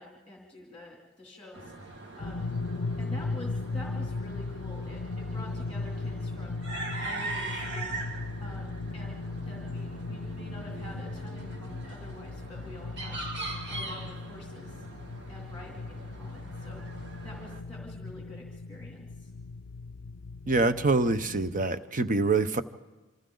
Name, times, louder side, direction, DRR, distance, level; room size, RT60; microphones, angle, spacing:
voice 1, 0.0-1.7 2.1-2.5 3.0-6.6 7.0-8.0 8.4-13.2 13.7-14.8 15.3-16.8 17.2-19.3, left 1 dB, 5° left, -2 dB, 2.8 m, -48 dB
sound 1, 1.5-17.6, right 2 dB, 55° right, 2.0 m, -42 dB
sound 2, 2.2-21.7, left 3 dB, 60° left, 0.6 m, -37 dB
voice 2, 20.5-22.6, right 3 dB, 40° right, 11 dB, 0.8 m, -25 dB
28.0 x 26.0 x 3.9 m, 1.2 s
head